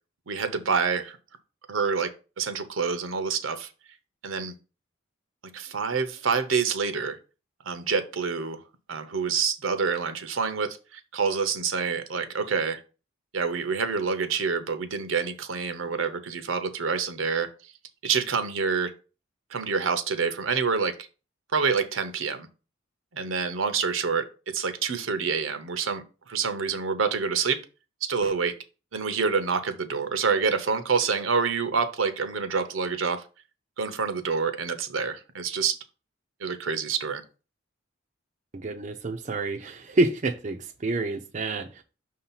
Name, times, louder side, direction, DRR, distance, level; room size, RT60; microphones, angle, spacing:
voice 1, 0.3-1.2 1.7-3.7 4.2-4.5 5.5-7.2 7.7-8.6 8.9-12.8 13.3-17.5 18.0-18.9 19.5-21.1 21.5-22.5 23.1-24.3 24.5-27.6 28.0-28.6 28.9-33.2 33.8-35.8 36.4-37.2, right 5 dB, 75° right, 9 dB, 0.8 m, -27 dB
voice 2, 38.5-41.8, right 2 dB, 35° right, 3 dB, 0.5 m, -28 dB
6.0 x 2.8 x 5.6 m, 0.33 s
head